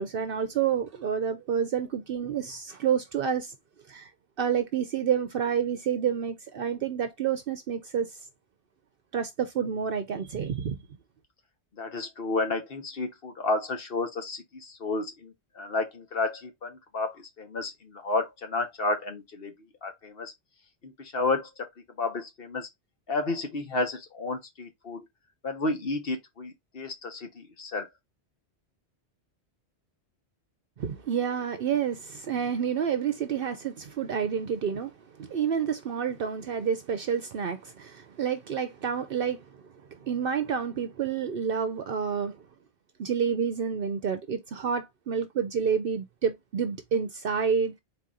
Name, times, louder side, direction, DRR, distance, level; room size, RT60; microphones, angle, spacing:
voice 1, 0.0-3.5 3.9-4.1 4.4-8.2 9.1-10.8 30.8-39.5 39.9-42.4 43.0-47.8, right 7 dB, 60° right, 0.8 m, -29 dB
voice 2, 11.8-19.5 19.8-20.3 20.8-21.5 22.0-22.7 23.1-25.1 25.4-27.9, left 3 dB, 60° left, 1.3 m, -31 dB
4.1 x 2.8 x 3.7 m
omnidirectional pair, 1.1 m